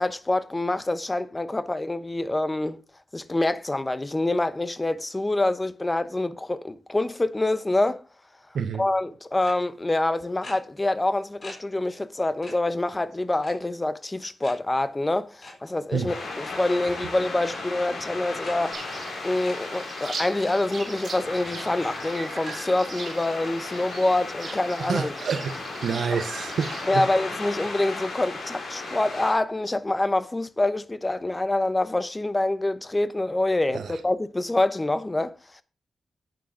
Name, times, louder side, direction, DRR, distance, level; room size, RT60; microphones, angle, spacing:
voice 1, 0.0-2.8 3.1-8.0 8.8-25.1 26.9-35.6, left 2 dB, 20° left, 0.9 m, -26 dB
sound 1, 9.4-9.5 10.4-10.5 11.4-11.5 11.9-12.0 12.4-12.5 13.4-13.8 14.4-14.5 15.4-15.5 16.3-16.5 17.4-17.5 18.4-18.5 19.4-19.5 20.4-20.5 21.4-21.5 22.4-22.5 23.0-23.1 23.4-23.5 24.4-24.5, left 2 dB, 45° left, 3.9 m, -42 dB
sound 2, 16.1-29.3, left 3 dB, 75° left, 5.3 m, -36 dB
sound 3, 18.7-26.9, right 4 dB, 55° right, 4.1 m, -40 dB
voice 2, 24.8-25.5 25.8-27.1 33.7-34.0, right 6 dB, 80° right, 0.7 m, -28 dB
11.0 x 9.0 x 3.8 m
cardioid pair, 75°, 0 cm